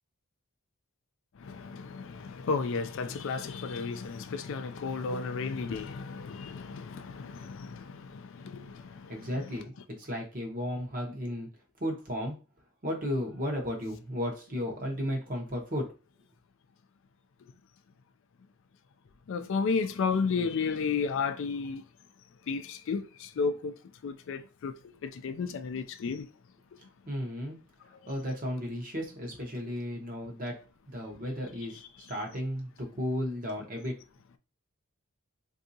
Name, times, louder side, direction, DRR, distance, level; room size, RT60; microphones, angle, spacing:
voice 1, 1.4-9.5 19.3-21.8 22.5-23.8 24.0-24.7 25.0-26.3 27.9-28.2, left 5 dB, 60° left, 0.3 m, -33 dB
voice 2, 9.1-9.7 10.0-11.5 11.8-12.4 12.8-15.9 27.1-27.6 28.1-30.6 30.9-34.0, equal, 40° right, 1.0 m, -34 dB
3.5 x 2.7 x 2.7 m
head